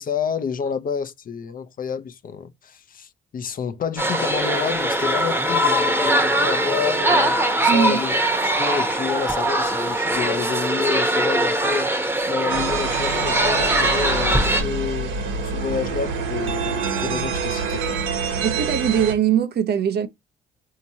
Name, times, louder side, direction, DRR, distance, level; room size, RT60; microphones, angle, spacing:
voice 1, 0.0-7.4 7.6-8.2 8.4-15.2 15.4-18.0, left 6 dB, 45° left, 0.6 m, -29 dB
sound 1, 4.0-14.6, right 1 dB, 10° right, 0.9 m, -21 dB
voice 2, 7.7-8.0 18.4-20.1, right 8 dB, 55° right, 0.6 m, -21 dB
sound 2, 12.5-19.1, right 5 dB, 85° right, 1.0 m, -26 dB
4.4 x 2.8 x 2.7 m
cardioid pair, 90°, 20 cm